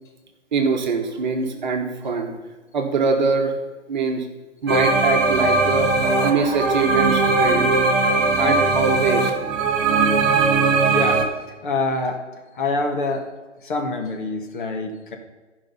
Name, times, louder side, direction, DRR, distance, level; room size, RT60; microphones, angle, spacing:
voice 1, 0.5-2.3 2.7-3.5 3.9-4.3 4.6-7.8 8.0-9.3, right 4 dB, 40° right, 3 dB, 1.2 m, -23 dB
sound 1, 4.7-11.2, right 3 dB, 15° right, 0.9 m, -19 dB
voice 2, 10.9-11.3 11.6-12.2 12.6-13.3 13.6-15.2, left 2 dB, 40° left, 3 dB, 1.6 m, -25 dB
13.5 x 5.2 x 5.6 m, 1.2 s
figure-of-eight pair, 130°, 37 cm